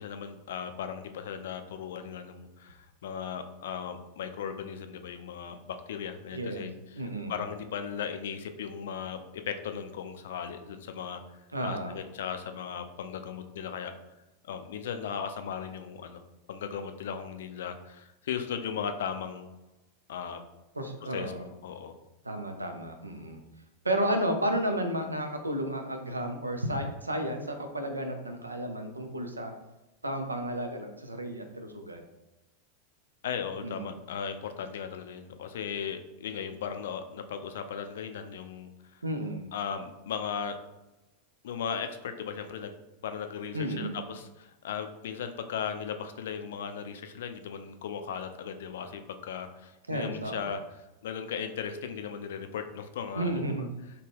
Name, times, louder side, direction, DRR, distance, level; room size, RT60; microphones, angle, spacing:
voice 1, 0.0-11.2 11.6-13.9 14.4-16.2 16.5-19.5 20.1-20.4 21.1-21.3 21.6-22.0 33.2-39.0 39.5-40.6 41.4-42.8 43.0-50.6 51.0-53.4, left 7 dB, 60° left, 8 dB, 0.3 m, -37 dB
voice 2, 6.3-6.7 6.9-7.4 11.5-12.0 20.7-21.5 22.2-23.4 23.8-29.5 30.0-32.1 33.6-33.9 39.0-39.5 43.5-44.0 49.9-50.5 53.2-53.9, right 1 dB, 80° right, 5 dB, 0.4 m, -32 dB
3.5 x 2.1 x 3.4 m, 1.0 s
figure-of-eight pair, 90°, 0 cm